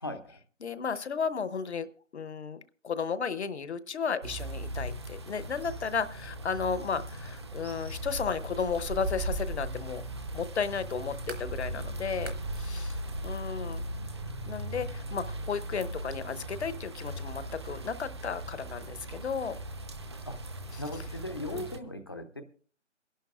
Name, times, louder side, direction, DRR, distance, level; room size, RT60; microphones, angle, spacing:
voice 1, 0.0-0.4 20.3-20.4 20.8-22.4, left 1 dB, 20° left, 8 dB, 0.5 m, -38 dB
voice 2, 0.6-1.9 2.1-10.0 10.3-13.0 13.2-13.9 14.5-19.6 21.5-21.7, left 6 dB, 65° left, 14 dB, 0.9 m, -34 dB
sound 1, 4.2-21.8, right 1 dB, 20° right, 0.6 m, -38 dB
sound 2, 11.3-11.5 12.1-12.8 13.7-13.8, right 4 dB, 65° right, 3.0 m, -47 dB
27.5 x 11.5 x 2.3 m, 0.41 s
figure-of-eight pair, 155°, 37 cm